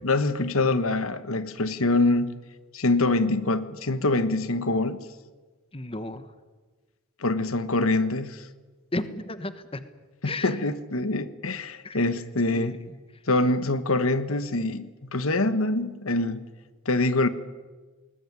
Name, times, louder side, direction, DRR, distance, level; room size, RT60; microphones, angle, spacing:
voice 1, 0.0-2.4 2.7-5.0 7.2-8.5 10.2-12.8 13.3-16.4 16.8-17.3, left 2 dB, 75° left, 1.3 m, -25 dB
voice 2, 5.7-6.3 8.9-9.8 10.2-10.6 11.8-12.0 12.5-12.9, left 2 dB, 25° left, 1.2 m, -33 dB
20.5 x 20.0 x 9.6 m
head